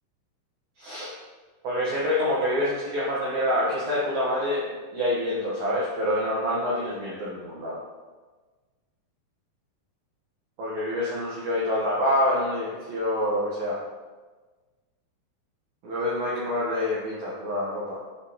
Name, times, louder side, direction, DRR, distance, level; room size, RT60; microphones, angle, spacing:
voice 1, 0.8-1.1 1.6-7.8 10.6-13.8 15.8-18.0, left 1 dB, 65° right, -6 dB, 1.9 m, -26 dB
11.0 x 4.9 x 2.8 m, 1.3 s
omnidirectional pair, 4.7 m